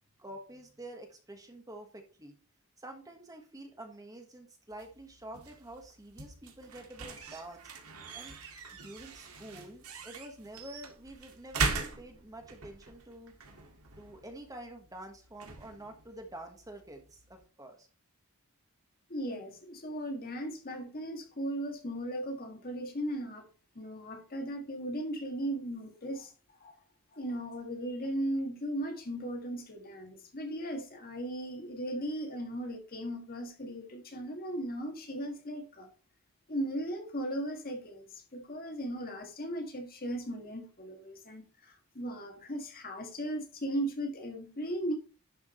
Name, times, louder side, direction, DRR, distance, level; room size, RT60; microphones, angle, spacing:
voice 1, 0.2-2.4 2.8-7.7 8.1-8.3 8.7-13.3 14.0-17.9, right 1 dB, 15° right, 1.3 m, -48 dB
sound 1, 4.7-17.5, right 4 dB, 75° right, 1.9 m, -41 dB
voice 2, 19.1-23.5 23.7-26.3 26.6-26.7 27.1-35.9 36.5-44.9, right 1 dB, 40° left, 1.7 m, -37 dB
11.5 x 4.8 x 4.3 m
head